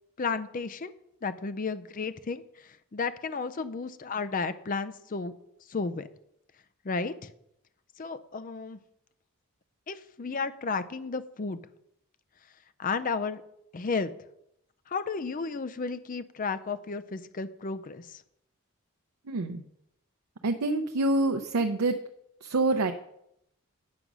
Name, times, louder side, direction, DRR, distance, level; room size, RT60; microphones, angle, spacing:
voice 1, 0.2-0.9 1.2-5.3 5.7-6.1 6.8-7.3 8.0-8.8 9.9-11.6 12.8-13.4 13.7-14.1 14.9-18.2, left 4 dB, 35° left, 11 dB, 0.5 m, -33 dB
voice 2, 19.3-19.6 20.4-22.0 22.4-22.9, right 2 dB, 80° right, 6 dB, 0.6 m, -26 dB
9.5 x 5.2 x 6.1 m, 0.77 s
head